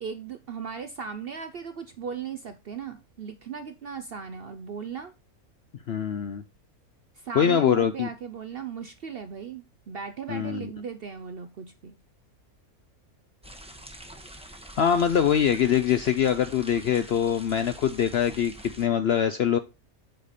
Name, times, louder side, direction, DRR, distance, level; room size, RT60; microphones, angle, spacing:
voice 1, 0.0-5.1 7.1-12.0, right 6 dB, 60° right, 0.6 m, -37 dB
voice 2, 5.9-6.4 7.4-8.1 10.3-10.7 14.8-19.6, left 8 dB, 65° left, 0.6 m, -23 dB
sound 1, 13.4-18.9, right 1 dB, 5° right, 0.7 m, -45 dB
8.0 x 5.0 x 4.1 m
omnidirectional pair, 1.6 m